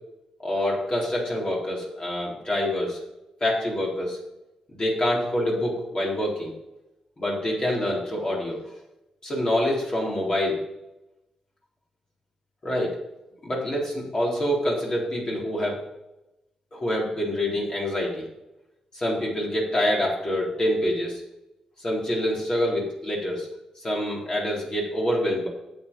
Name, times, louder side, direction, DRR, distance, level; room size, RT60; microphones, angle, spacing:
voice 1, 0.4-3.0 3.4-4.2 4.7-6.5 7.2-8.6 9.2-10.6 12.6-13.0 13.4-15.8 16.7-18.3 18.9-21.2 21.8-23.5 23.8-25.5, left 1 dB, 40° left, -4 dB, 4.0 m, -26 dB
9.4 x 7.9 x 5.5 m, 0.93 s
cardioid pair, 65°, 2 cm